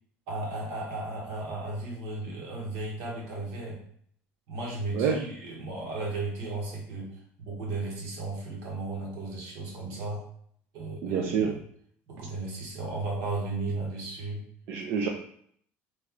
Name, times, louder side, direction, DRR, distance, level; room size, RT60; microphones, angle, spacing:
voice 1, 0.3-3.8 4.5-10.3 10.7-11.6 12.1-14.4, right 2 dB, 80° right, -2 dB, 1.2 m, -35 dB
voice 2, 11.0-11.5 14.7-15.1, right 6 dB, 60° right, 2 dB, 0.4 m, -27 dB
3.1 x 2.3 x 3.7 m, 0.64 s
cardioid pair, 155°, 5 cm